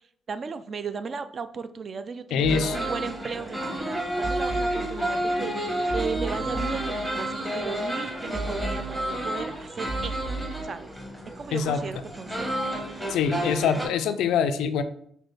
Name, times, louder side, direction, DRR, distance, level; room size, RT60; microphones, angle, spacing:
voice 1, 0.3-10.2 10.6-10.9 11.4-12.6, right 5 dB, 45° right, 12 dB, 0.3 m, -36 dB
voice 2, 2.3-2.9 11.5-11.8 13.1-14.8, left 6 dB, 85° left, 11 dB, 0.3 m, -24 dB
sound 1, 2.4-10.6, right 4 dB, 80° right, 1.2 m, -36 dB
sound 2, 2.5-13.9, right 1 dB, 15° right, 1.1 m, -30 dB
6.2 x 2.2 x 3.2 m, 0.68 s
cardioid pair, 90°, 0 cm